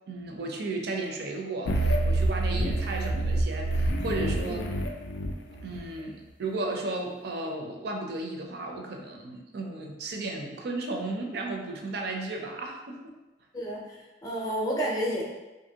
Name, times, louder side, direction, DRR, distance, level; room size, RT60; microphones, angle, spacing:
voice 1, 0.1-4.7 5.6-13.1, right 2 dB, 60° right, 2 dB, 0.4 m, -34 dB
sound 1, 1.7-5.8, right 1 dB, 75° left, 0.3 m, -27 dB
voice 2, 13.5-15.2, equal, 20° left, -3 dB, 0.5 m, -31 dB
2.7 x 2.5 x 2.8 m, 1.1 s
head